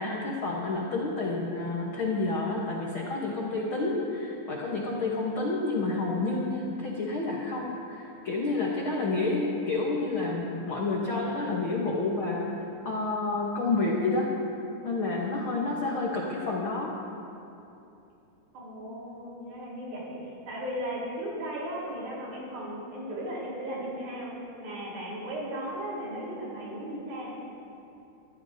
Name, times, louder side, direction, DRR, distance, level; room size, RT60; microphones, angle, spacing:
voice 1, 0.0-12.5 12.8-14.3 14.8-16.9, left 3 dB, 75° left, -3 dB, 1.1 m, -29 dB
voice 2, 3.6-3.9 8.9-9.3 15.5-16.0 18.5-27.3, equal, 75° right, -6 dB, 5.9 m, -37 dB
22.5 x 14.5 x 2.8 m, 2.8 s
omnidirectional pair, 4.3 m